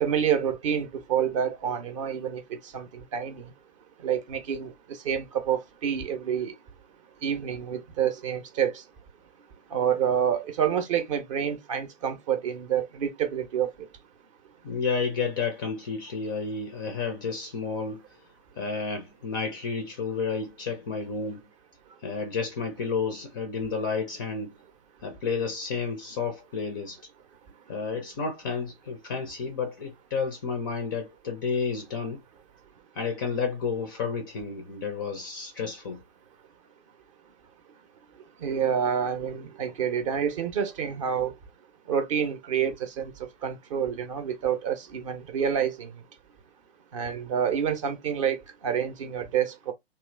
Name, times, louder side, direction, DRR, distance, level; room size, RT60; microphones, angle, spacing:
voice 1, 0.0-2.4 2.7-2.9 3.1-3.4 4.0-4.7 5.0-6.5 7.2-8.7 9.7-13.7 38.4-41.3 41.9-43.1 43.4-45.9 46.9-49.7, right 8 dB, 30° right, 0.6 m, -28 dB
voice 2, 14.6-18.0 18.6-21.4 22.0-24.5 25.0-27.0 27.7-32.2 32.9-36.0, left 5 dB, 20° left, 0.4 m, -31 dB
3.0 x 2.3 x 3.1 m
figure-of-eight pair, 120°, 32 cm